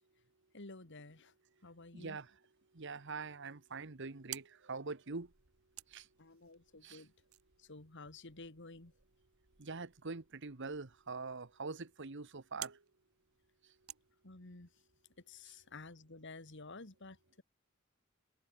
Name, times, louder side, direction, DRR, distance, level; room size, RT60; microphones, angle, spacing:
voice 1, 0.5-1.3 1.6-2.2 6.2-7.1 7.6-8.9 14.2-14.7 15.2-17.4, left 3 dB, 55° left, 2.3 m, -52 dB
voice 2, 1.9-2.4 2.7-5.3 5.9-6.1 6.8-7.0 9.6-12.8 13.6-13.7, right 4 dB, 60° right, 1.2 m, -44 dB
sound 1, 3.9-14.8, right 13 dB, 85° right, 2.6 m, -55 dB
open air
head